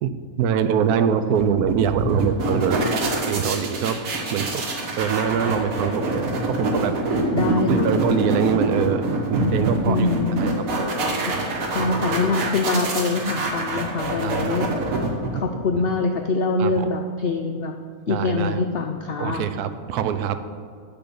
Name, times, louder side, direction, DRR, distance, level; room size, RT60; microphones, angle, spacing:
voice 1, 0.0-2.8 3.3-4.0 4.3-4.6 5.0-6.9 7.7-10.0 10.4-10.7 14.2-14.6 15.7-15.8 16.6-16.9 18.1-18.6 19.2-20.4, right 8 dB, 85° right, 11 dB, 1.1 m, -24 dB
sound 1, 1.4-15.7, right 2 dB, 65° right, 1.5 m, -25 dB
voice 2, 7.3-7.9 9.9-10.5 11.3-11.4 11.7-14.7 15.3-17.7 18.1-19.5, left 3 dB, 85° left, 4 dB, 0.5 m, -24 dB
10.0 x 3.9 x 6.8 m, 2.1 s
omnidirectional pair, 1.6 m